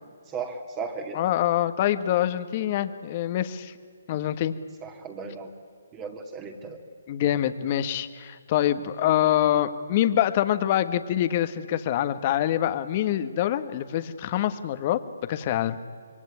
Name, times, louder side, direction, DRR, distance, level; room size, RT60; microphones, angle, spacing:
voice 1, 0.3-1.2 4.8-5.5 5.9-6.8, right 5 dB, 20° right, 3 dB, 2.4 m, -35 dB
voice 2, 1.1-3.7 4.1-4.5 7.1-15.0 15.3-15.8, left 12 dB, 35° left, 11 dB, 1.5 m, -25 dB
26.5 x 23.0 x 9.8 m, 2.1 s
hypercardioid pair, 150°, 0 cm